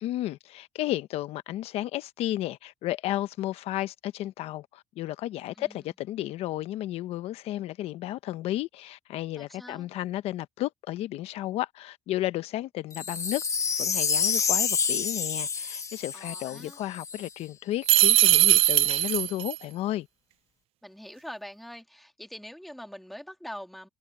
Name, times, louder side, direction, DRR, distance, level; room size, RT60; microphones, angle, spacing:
voice 1, 0.0-13.4 13.8-20.1, left 14 dB, 80° left, 0.9 m, -33 dB
voice 2, 9.4-9.9 16.1-16.8 20.8-23.9, equal, ahead, 2.0 m, -43 dB
Wind chime, 12.9-17.3 17.8-17.9, left 6 dB, 30° left, 1.2 m, -28 dB
sound 1, 17.9-19.6, right 15 dB, 70° right, 0.4 m, -20 dB
cardioid pair, 100°, 10 cm